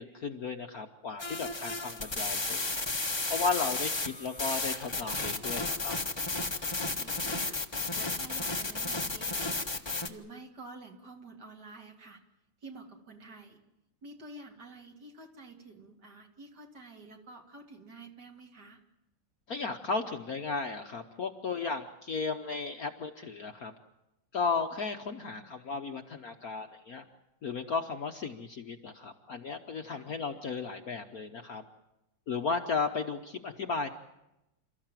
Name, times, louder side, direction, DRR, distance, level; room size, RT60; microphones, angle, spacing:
voice 1, 0.0-5.9 19.5-23.7 24.3-27.0 27.4-31.6 32.3-33.9, left 4 dB, 50° left, 5 dB, 1.2 m, -35 dB
sound 1, 1.2-10.1, left 3 dB, 20° left, 0.8 m, -33 dB
voice 2, 6.7-9.5 10.1-12.2 12.6-13.6 14.0-18.8 29.9-30.1, right 3 dB, 50° right, 3 dB, 2.8 m, -50 dB
28.5 x 14.0 x 9.0 m, 0.91 s
omnidirectional pair, 2.4 m